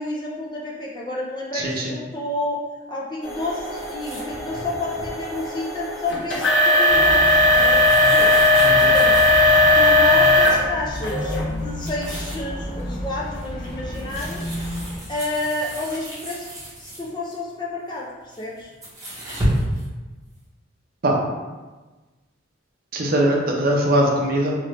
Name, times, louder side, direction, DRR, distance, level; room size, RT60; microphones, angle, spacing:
voice 1, 0.0-2.6 2.9-7.2 7.5-8.3 8.9-9.3 9.7-14.4 15.1-16.4 16.8-18.1 18.4-18.7, left 2 dB, 20° left, -3 dB, 0.4 m, -30 dB
voice 2, 1.5-1.9 8.6-8.9 21.0-21.2 22.9-24.5, right 1 dB, 50° right, -1 dB, 0.5 m, -21 dB
sound 1, 3.2-10.6 11.0-11.4 12.0-12.1 12.8-12.9, left 1 dB, 70° left, 0.7 m, -18 dB
sound 2, 3.7-9.8 10.3-10.6 10.9-11.1 11.4-12.5 12.9-17.4 18.2-19.8, equal, 20° right, 1.0 m, -33 dB
sound 3, 6.9-15.0, equal, 40° left, 1.3 m, -31 dB
2.9 x 2.5 x 3.2 m, 1.2 s
head